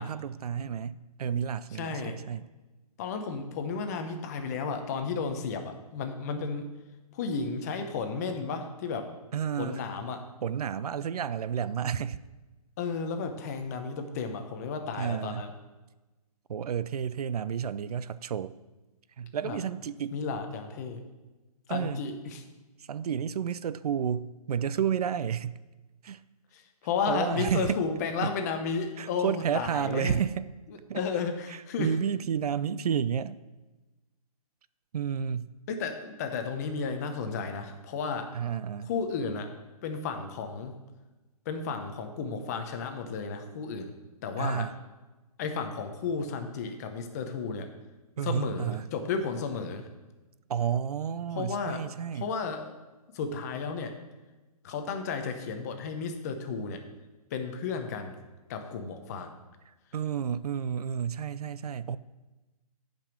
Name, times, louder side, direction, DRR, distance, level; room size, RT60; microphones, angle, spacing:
voice 1, 0.0-2.4 9.3-9.8 10.4-12.2 14.9-15.5 16.5-18.5 19.2-20.2 21.7-22.0 22.8-25.6 26.0-26.2 27.1-27.8 28.2-28.3 29.0-30.4 30.9-31.0 31.8-33.4 34.9-35.5 38.3-38.9 44.4-44.7 48.2-48.9 50.5-52.3 59.7-62.0, right 8 dB, 75° right, 16 dB, 0.4 m, -31 dB
voice 2, 1.8-2.2 3.0-6.7 7.1-9.1 9.6-10.2 12.8-15.5 19.4-19.6 20.1-21.0 21.7-22.4 26.5-30.2 30.9-31.9 35.7-38.3 38.8-39.5 39.8-40.8 41.5-43.9 44.2-44.7 45.4-47.7 48.2-49.8 51.4-51.8 52.1-52.7 53.1-53.9 54.6-56.8 57.3-58.2 58.5-59.4, left 5 dB, 25° left, 6 dB, 0.8 m, -33 dB
9.0 x 5.3 x 6.1 m, 1.1 s
hypercardioid pair, 160°, 20 cm